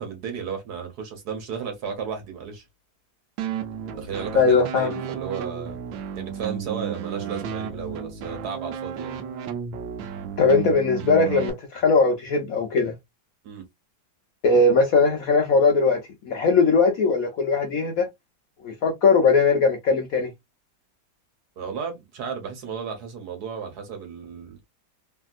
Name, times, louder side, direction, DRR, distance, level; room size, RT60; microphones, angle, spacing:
voice 1, 0.0-2.6 3.9-5.8 6.2-9.2 13.4-13.6 21.6-24.6, right 6 dB, 60° right, 1.4 m, -34 dB
sound 1, 3.4-11.5, right 8 dB, 80° right, 1.3 m, -33 dB
voice 2, 4.3-4.9 10.4-12.9 14.4-18.1 18.6-20.3, left 4 dB, 65° left, 0.9 m, -20 dB
3.2 x 2.7 x 2.3 m
omnidirectional pair, 2.1 m